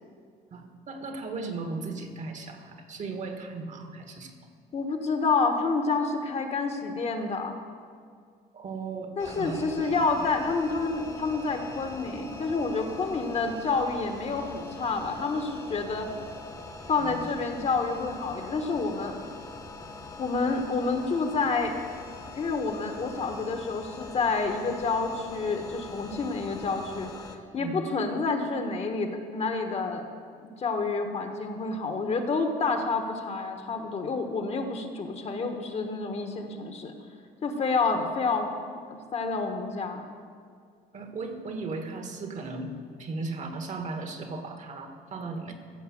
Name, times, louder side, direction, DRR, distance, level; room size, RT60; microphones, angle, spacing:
voice 1, 0.5-4.3 8.5-9.7 10.2-10.3 17.0-17.4 27.6-27.8 38.0-38.1 40.9-45.5, right 3 dB, 45° right, 5 dB, 1.5 m, -36 dB
voice 2, 4.7-7.6 9.2-16.1 16.9-19.2 20.2-21.7 22.3-27.1 27.5-30.0 30.4-36.9 37.4-40.0, left 4 dB, 40° left, 5 dB, 1.3 m, -29 dB
sound 1, 9.2-27.4, left 2 dB, 20° left, 1.2 m, -43 dB
15.0 x 5.6 x 7.1 m, 2.1 s
cardioid pair, 110°, 17 cm